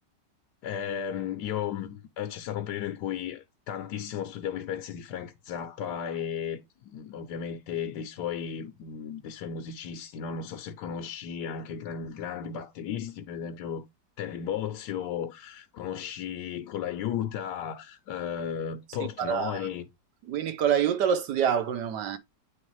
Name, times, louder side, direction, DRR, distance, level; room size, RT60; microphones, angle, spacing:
voice 1, 0.6-13.8 14.2-19.8, left 8 dB, 75° left, 1.2 m, -34 dB
voice 2, 19.0-19.7 20.3-22.2, right 8 dB, 75° right, 1.4 m, -26 dB
9.8 x 3.3 x 3.0 m
omnidirectional pair, 1.9 m